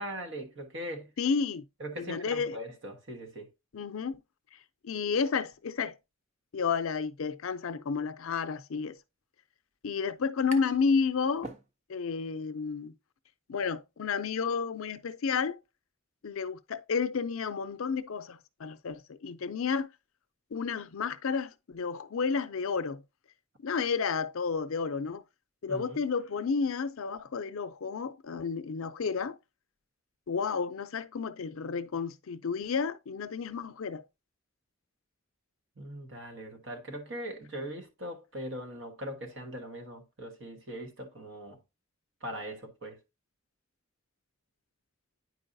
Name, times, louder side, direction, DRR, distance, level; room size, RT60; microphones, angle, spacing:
voice 1, 0.0-1.1 1.8-3.5 25.7-26.0 35.8-41.6 42.2-43.0, equal, 60° right, 1.3 m, -40 dB
voice 2, 1.2-1.6 2.0-2.6 3.7-4.2 4.8-5.9 6.5-9.0 9.8-11.5 11.9-12.9 13.5-15.6 16.2-19.9 20.5-23.0 23.6-25.2 25.6-29.4 30.3-34.0, left 5 dB, 80° left, 0.5 m, -31 dB
sound 1, 9.4-9.5 9.7-10.9 11.2-12.1, right 2 dB, 35° right, 0.6 m, -45 dB
9.5 x 4.6 x 2.6 m
head